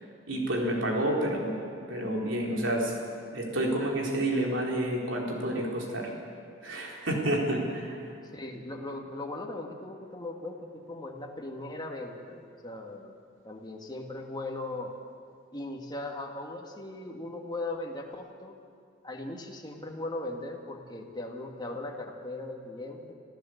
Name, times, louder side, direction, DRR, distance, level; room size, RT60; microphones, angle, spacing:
voice 1, 0.3-1.5 1.9-2.9 3.3-6.1 6.6-8.0, right 1 dB, 70° right, -1 dB, 4.3 m, -29 dB
voice 2, 8.3-13.2 13.4-14.9 15.5-18.6 19.0-23.1, left 2 dB, 20° left, 1 dB, 2.0 m, -38 dB
26.5 x 15.0 x 8.0 m, 2.3 s
head